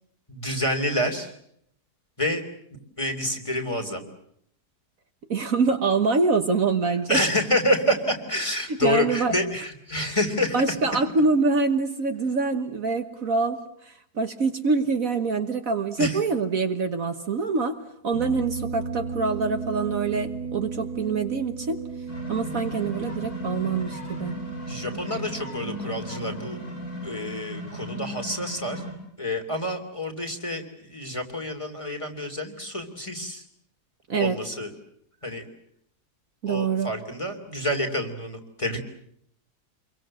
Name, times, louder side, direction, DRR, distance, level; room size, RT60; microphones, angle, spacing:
voice 1, 0.3-1.3 2.2-2.4 3.0-4.0 7.1-10.5 16.0-16.2 24.7-26.6 27.0-28.8 29.2-33.4 34.1-34.7 35.2-35.4 36.5-38.8, left 1 dB, 20° left, 4 dB, 3.1 m, -28 dB
voice 2, 5.3-7.2 8.7-9.6 10.5-17.8 18.0-21.8 22.3-24.4 34.1-34.4 36.4-36.9, right 4 dB, 55° right, 7 dB, 1.6 m, -25 dB
sound 1, 18.1-27.2, right 5 dB, 45° left, 4.6 m, -36 dB
sound 2, 22.1-28.9, equal, 60° left, 7.9 m, -36 dB
27.5 x 23.0 x 7.6 m, 0.71 s
omnidirectional pair, 1.8 m